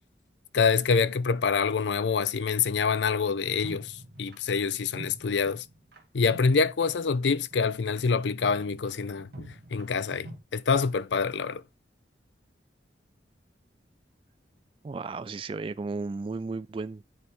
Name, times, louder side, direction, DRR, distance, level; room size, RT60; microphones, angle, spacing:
voice 1, 0.5-5.6 6.1-11.6, left 5 dB, 80° left, 0.5 m, -26 dB
sound 1, 3.6-6.0 6.3-7.2 7.5-10.4, right 1 dB, 60° right, 1.6 m, -47 dB
voice 2, 14.8-17.1, right 3 dB, 30° right, 0.3 m, -34 dB
9.7 x 3.4 x 4.2 m
head